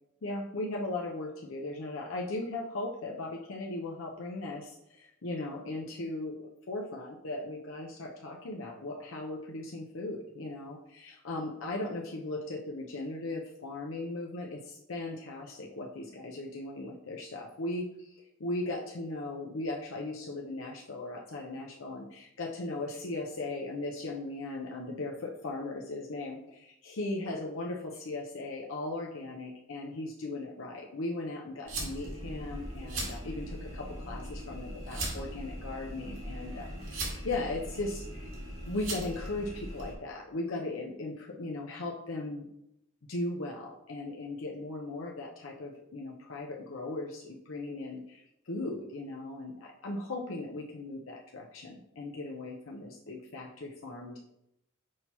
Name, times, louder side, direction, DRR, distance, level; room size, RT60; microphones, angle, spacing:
voice 1, 0.2-38.3 38.6-42.5 43.1-54.2, left 2 dB, 80° left, -1 dB, 0.7 m, -38 dB
sound 1, 31.7-39.9, right 1 dB, 75° right, 2.1 m, -39 dB
6.3 x 2.9 x 5.4 m, 0.81 s
head